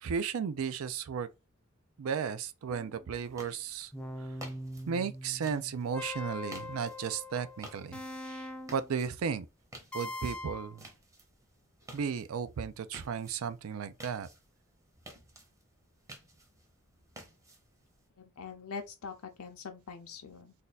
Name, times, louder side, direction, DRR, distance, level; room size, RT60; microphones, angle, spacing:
voice 1, 0.0-1.3 2.0-3.9 4.2-4.4 4.9-9.5 9.9-10.9 11.9-14.3, right 6 dB, 70° right, 0.4 m, -35 dB
sound 1, 2.7-3.2 3.9-9.0 9.9-10.7, left 1 dB, 5° left, 0.4 m, -42 dB
sound 2, 3.2-18.1, right 1 dB, 15° right, 0.8 m, -54 dB
voice 2, 18.2-20.5, left 5 dB, 80° left, 0.5 m, -43 dB
2.6 x 2.3 x 4.0 m
head